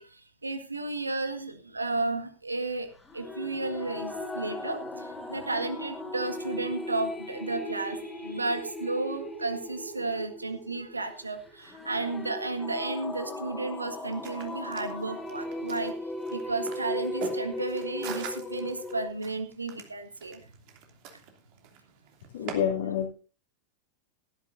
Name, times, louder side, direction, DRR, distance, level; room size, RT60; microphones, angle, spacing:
voice 1, 0.0-2.9 3.1-15.9 16.3-20.4, right 2 dB, 80° right, 9 dB, 1.7 m, -33 dB
sound 1, 3.0-19.1, left 1 dB, 10° left, 3.6 m, -37 dB
sound 2, 14.0-22.5, right 8 dB, 45° right, 2.9 m, -44 dB
voice 2, 22.3-23.1, left 8 dB, 60° left, -3 dB, 2.9 m, -28 dB
17.5 x 12.5 x 2.7 m, 0.35 s
figure-of-eight pair, 90°, 0 cm